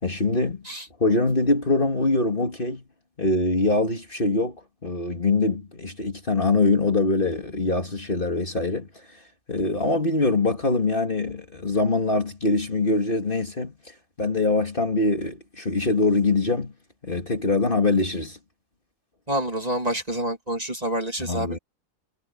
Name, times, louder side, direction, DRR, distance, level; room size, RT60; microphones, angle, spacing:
voice 1, 0.0-0.6 1.0-2.8 3.2-9.2 9.5-13.7 14.2-16.7 17.0-18.4 21.2-21.6, left 3 dB, 40° left, 2.5 m, -23 dB
voice 2, 19.3-21.6, right 1 dB, 25° right, 3.3 m, -27 dB
omnidirectional pair, 1.5 m